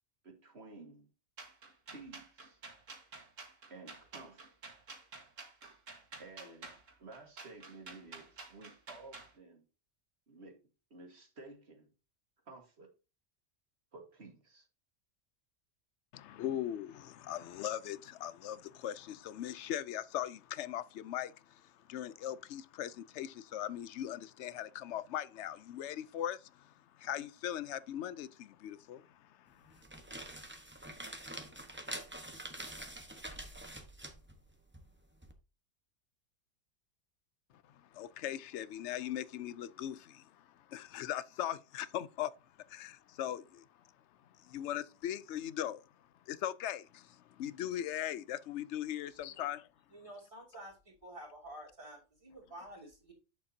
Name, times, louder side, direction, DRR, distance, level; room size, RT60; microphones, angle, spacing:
voice 1, 0.2-1.1 1.9-2.6 3.7-4.4 6.2-6.7 7.0-9.7 10.3-10.6 10.9-11.9 12.5-12.9 13.9-14.7, right 3 dB, 55° right, 2.0 m, -53 dB
sound 1, 1.4-9.3, right 3 dB, 80° right, 2.1 m, -50 dB
voice 2, 16.1-29.8 37.7-42.3 42.7-43.7 44.4-45.8 46.3-49.7, left 11 dB, 70° left, 0.8 m, -40 dB
sound 2, 29.6-35.3, right 1 dB, 10° right, 1.0 m, -46 dB
voice 3, 49.9-50.7 51.0-53.1, right 1 dB, 25° right, 2.7 m, -50 dB
8.5 x 7.1 x 2.8 m
omnidirectional pair, 1.3 m